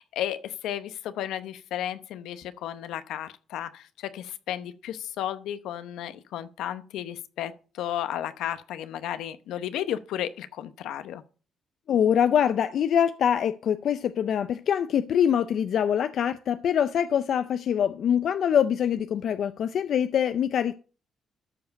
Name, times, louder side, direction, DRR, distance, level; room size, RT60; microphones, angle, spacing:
voice 1, 0.0-7.5 7.8-11.2, left 11 dB, 85° left, 0.8 m, -33 dB
voice 2, 11.9-20.7, left 8 dB, 65° left, 0.5 m, -24 dB
13.0 x 4.9 x 5.2 m
cardioid pair, 90°, 0 cm